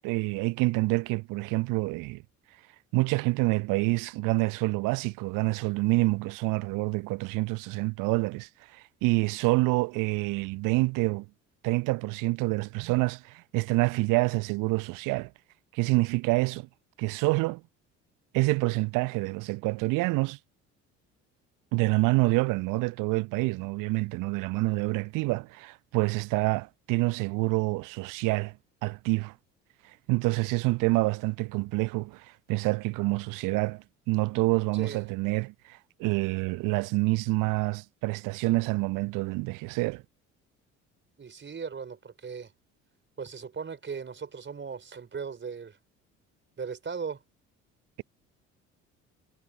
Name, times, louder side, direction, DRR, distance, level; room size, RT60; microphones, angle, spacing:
voice 1, 0.0-2.2 2.9-11.3 11.6-15.3 15.7-16.7 17.0-17.6 18.3-20.4 21.7-28.5 28.8-29.3 30.1-40.0, right 24 dB, 55° right, 0.9 m, -27 dB
voice 2, 41.2-42.5 43.2-45.8 46.6-47.2, right 6 dB, 30° right, 4.5 m, -38 dB
figure-of-eight pair, 55°, 37 cm